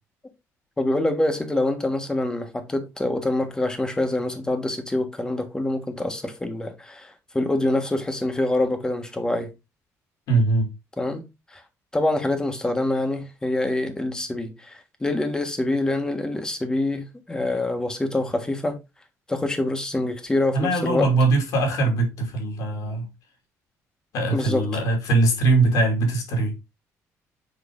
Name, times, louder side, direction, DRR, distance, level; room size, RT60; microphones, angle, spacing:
voice 1, 0.8-9.5 11.0-11.2 11.5-11.6 11.9-18.8 19.3-21.1 24.3-24.6, left 2 dB, 10° left, 1.4 m, -25 dB
voice 2, 10.3-10.7 20.5-23.1 24.1-26.5, right 2 dB, 85° left, 2.8 m, -21 dB
6.4 x 4.7 x 3.7 m
cardioid pair, 130°, 6 cm